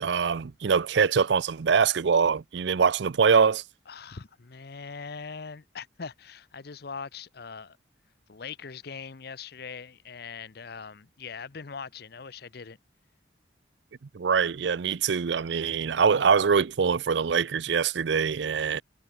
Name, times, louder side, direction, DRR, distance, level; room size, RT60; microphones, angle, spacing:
voice 1, 0.0-3.6 14.1-18.8, right 6 dB, 70° right, 0.5 m, -23 dB
voice 2, 3.9-7.8 8.3-12.8, left 5 dB, 55° left, 0.7 m, -41 dB
head